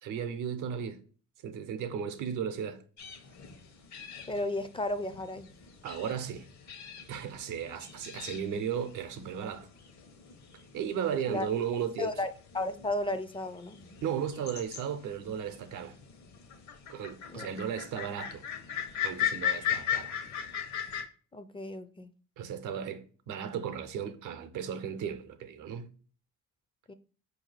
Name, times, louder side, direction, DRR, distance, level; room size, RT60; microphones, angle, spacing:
voice 1, 0.0-1.0 1.4-2.8 5.8-6.5 7.1-9.7 10.7-12.1 14.0-16.0 16.9-18.4 19.0-20.1 22.4-25.9, right 8 dB, 85° right, 0.7 m, -35 dB
sound 1, 3.0-21.0, left 9 dB, 65° left, 1.0 m, -39 dB
voice 2, 4.3-5.5 11.3-11.5 12.0-13.8 17.3-17.5 21.3-22.1 26.9-27.0, left 2 dB, 20° left, 0.4 m, -34 dB
4.8 x 2.7 x 3.9 m
cardioid pair, 90°, 30 cm